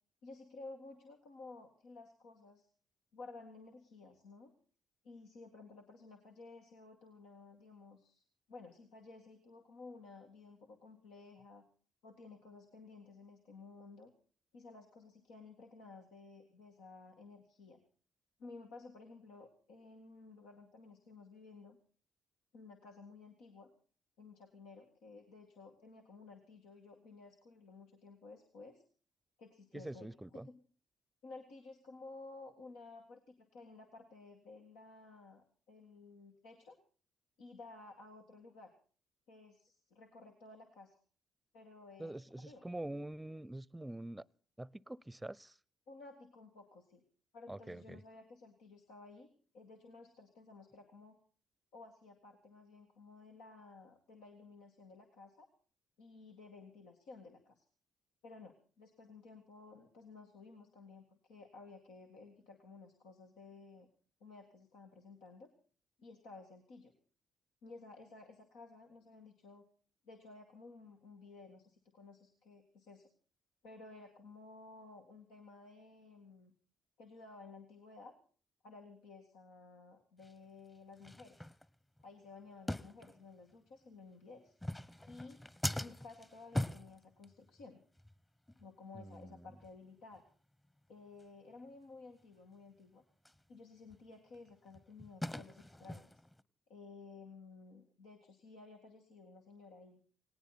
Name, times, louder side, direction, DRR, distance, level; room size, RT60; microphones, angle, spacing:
voice 1, 0.2-2.7 3.1-4.5 5.0-8.2 8.5-11.6 12.0-14.1 14.5-17.8 18.4-21.8 22.5-23.7 24.2-28.8 29.4-30.5 31.2-36.8 37.4-38.7 39.3-41.0 41.5-42.6 45.9-47.0 47.3-51.2 51.7-55.5 56.0-57.7 58.2-63.9 64.2-65.5 66.0-66.9 67.6-69.6 70.1-73.1 73.6-76.5 77.0-78.1 78.6-81.5 82.0-84.5 85.1-85.4 85.8-87.8 88.6-90.2 90.9-93.0 93.5-96.1 96.7-100.0, left 3 dB, 85° left, 1 dB, 2.1 m, -55 dB
voice 2, 29.7-30.5 42.0-44.2 44.6-45.6 47.5-48.0 88.9-89.5, right 1 dB, 10° right, 23 dB, 0.7 m, -45 dB
sound 1, 80.2-80.3 81.0-82.0 82.7-83.5 84.5-87.7 88.0-88.2 88.5-88.7 89.1-89.2 89.6-89.8 90.1-90.2 90.6-90.7 91.2-91.3 93.2-93.4 93.9-96.4, left 1 dB, 15° left, 1.1 m, -42 dB
18.5 x 18.0 x 4.2 m, 0.41 s
supercardioid pair, 55°, 0 cm